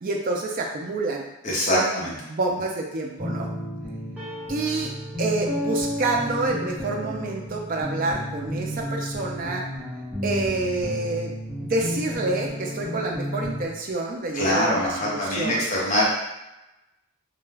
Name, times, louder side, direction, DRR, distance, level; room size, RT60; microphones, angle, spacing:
voice 1, 0.0-3.5 4.5-4.9 5.2-9.6 10.2-11.3 11.6-15.7, right 2 dB, 40° right, 1 dB, 0.4 m, -28 dB
voice 2, 1.4-2.1 14.3-16.0, left 1 dB, 35° left, -5 dB, 0.7 m, -23 dB
sound 1, 3.2-13.7, equal, 10° right, 0.8 m, -32 dB
2.3 x 2.2 x 3.2 m, 0.94 s
head